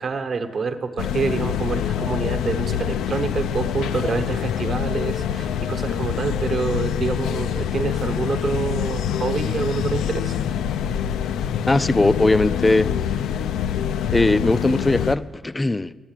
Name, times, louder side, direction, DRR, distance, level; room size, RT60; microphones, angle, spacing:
voice 1, 0.0-10.4, right 5 dB, 45° right, 1.1 m, -27 dB
sound 1, 1.0-15.2, left 9 dB, 80° left, 0.4 m, -25 dB
voice 2, 11.7-12.9 14.1-15.9, left 2 dB, 15° left, 0.4 m, -19 dB
10.5 x 8.7 x 9.0 m
cardioid pair, 90°, 0 cm